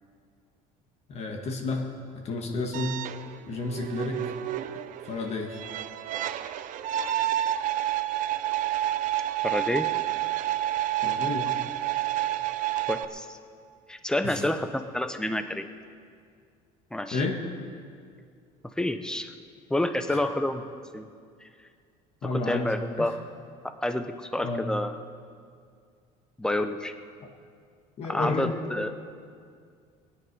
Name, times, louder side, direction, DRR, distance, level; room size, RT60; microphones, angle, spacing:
voice 1, 1.1-1.9 2.1-3.0 3.5-4.3 5.0-5.6 11.0-11.6 14.2-14.4 17.1-17.4 20.1-20.2 22.2-22.7 23.0-23.1 24.4-24.7 28.0-28.5, left 3 dB, 45° left, 3 dB, 1.7 m, -31 dB
sound 1, 2.7-13.1, right 13 dB, 55° right, 0.6 m, -29 dB
voice 2, 9.4-9.9 12.9-13.4 13.9-15.7 16.9-17.3 18.8-19.3 19.7-20.6 20.9-21.1 21.4-21.5 22.3-23.2 23.8-25.0 26.4-26.9 28.0-28.9, left 1 dB, 5° left, 9 dB, 0.7 m, -28 dB
20.0 x 9.7 x 5.4 m, 2.2 s
cardioid pair, 135°, 16 cm